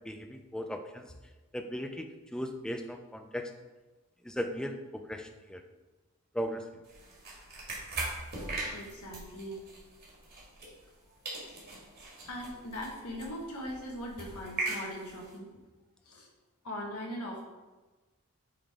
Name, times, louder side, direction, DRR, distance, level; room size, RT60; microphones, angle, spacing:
voice 1, 0.1-1.1 1.5-3.5 4.2-5.6 6.3-6.6, equal, 5° left, 6 dB, 0.4 m, -37 dB
sound 1, 6.8-11.0 11.2-15.3, right 3 dB, 45° right, 1.9 m, -40 dB
voice 2, 8.7-9.6 12.3-15.5 16.0-16.3 16.6-17.4, equal, 90° left, -1 dB, 1.5 m, -40 dB
8.6 x 3.8 x 3.6 m, 1.2 s
head